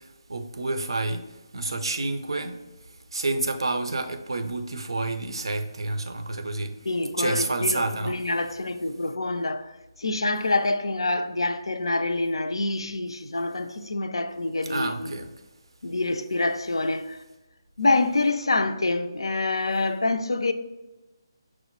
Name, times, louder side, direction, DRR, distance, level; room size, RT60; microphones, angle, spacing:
voice 1, 0.3-1.2 1.5-2.6 3.1-6.7 7.2-8.2 14.7-15.3, right 2 dB, 75° right, 0.4 m, -28 dB
voice 2, 6.9-15.1 15.8-17.2 17.8-20.5, left 2 dB, 80° left, 0.3 m, -26 dB
5.9 x 2.0 x 2.9 m
figure-of-eight pair, 150°, 3 cm